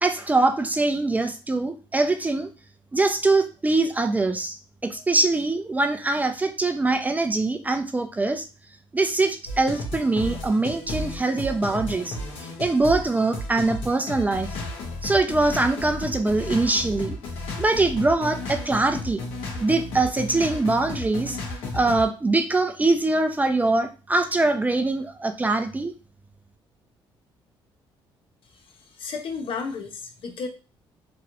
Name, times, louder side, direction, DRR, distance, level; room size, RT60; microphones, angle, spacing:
voice 1, 0.0-2.5 2.9-4.6 4.8-8.5 8.9-14.5 15.0-17.2 17.6-19.2 19.6-21.4 21.7-25.9, right 2 dB, 15° right, 7 dB, 0.4 m, -23 dB
sound 1, 9.4-22.0, left 2 dB, 80° left, 1.1 m, -33 dB
voice 2, 28.9-30.5, left 5 dB, 65° left, 4 dB, 0.7 m, -32 dB
3.0 x 2.5 x 2.9 m, 0.32 s
cardioid pair, 105°, 10 cm